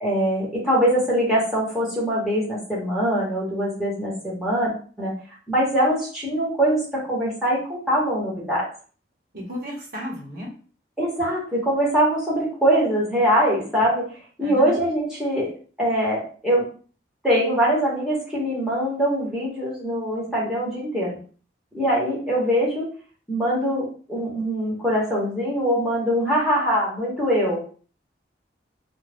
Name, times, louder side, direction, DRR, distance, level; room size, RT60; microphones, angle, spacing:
voice 1, 0.0-4.7 5.0-5.1 5.5-8.7 11.0-15.5 15.8-16.7 17.2-21.2 21.7-22.9 23.3-27.6, equal, 5° right, -7 dB, 1.1 m, -23 dB
voice 2, 9.3-10.6 14.4-14.8, left 1 dB, 50° right, -2 dB, 1.1 m, -33 dB
2.6 x 2.3 x 3.4 m, 0.40 s
head